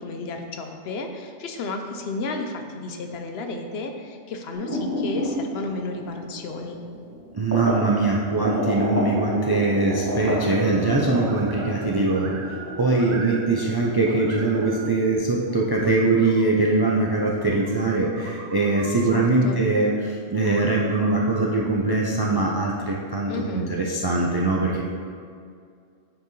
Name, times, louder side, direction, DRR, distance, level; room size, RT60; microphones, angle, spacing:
voice 1, 0.0-6.8 18.9-19.6 23.3-23.7, left 3 dB, 70° left, 5 dB, 0.8 m, -32 dB
sound 1, 4.5-7.8 8.4-15.2, equal, 15° right, 1.3 m, -31 dB
voice 2, 7.3-24.8, right 3 dB, 40° right, -2 dB, 0.3 m, -22 dB
sound 2, 10.0-13.3, left 2 dB, 45° left, 2.0 m, -39 dB
sound 3, 10.2-10.9 11.2-13.8 14.1-14.9 15.5-16.5 17.4-19.2 20.3-21.5, right 5 dB, 80° right, 0.9 m, -42 dB
8.4 x 4.5 x 3.1 m, 2.3 s
omnidirectional pair, 1.1 m